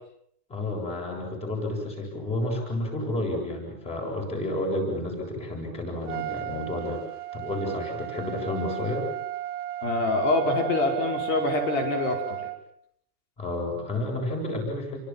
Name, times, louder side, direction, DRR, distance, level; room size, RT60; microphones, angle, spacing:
voice 1, 0.5-7.0 7.3-9.0 13.4-15.0, left 1 dB, 15° left, 2 dB, 7.9 m, -31 dB
Trumpet, 6.1-12.6, right 14 dB, 20° right, 1.4 m, -34 dB
voice 2, 9.8-12.5, left 2 dB, 50° left, 3 dB, 5.4 m, -25 dB
30.0 x 25.0 x 7.4 m, 0.71 s
supercardioid pair, 175°, 46 cm